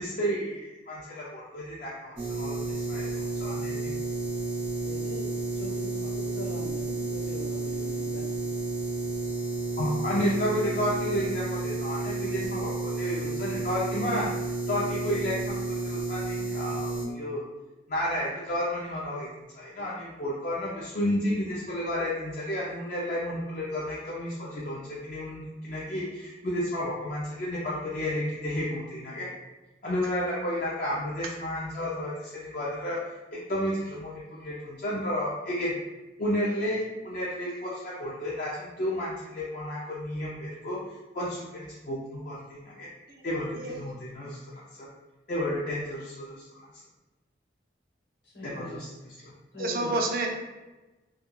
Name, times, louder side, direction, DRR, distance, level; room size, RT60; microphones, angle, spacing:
voice 1, 0.0-3.9 9.8-14.3 14.7-17.4 17.9-19.3 19.5-29.3 29.8-35.7 36.2-42.9 43.2-44.9 45.3-46.8 48.4-48.9 49.2-49.3, equal, 45° left, -6 dB, 0.3 m, -32 dB
sound 1, 2.2-17.0, right 2 dB, 75° right, 0.7 m, -31 dB
voice 2, 4.8-8.2 48.2-48.8 49.5-50.0, left 2 dB, 65° left, -4 dB, 0.8 m, -41 dB
voice 3, 49.6-50.3, right 2 dB, 50° right, 2 dB, 0.3 m, -29 dB
2.2 x 2.2 x 2.9 m, 1.1 s
head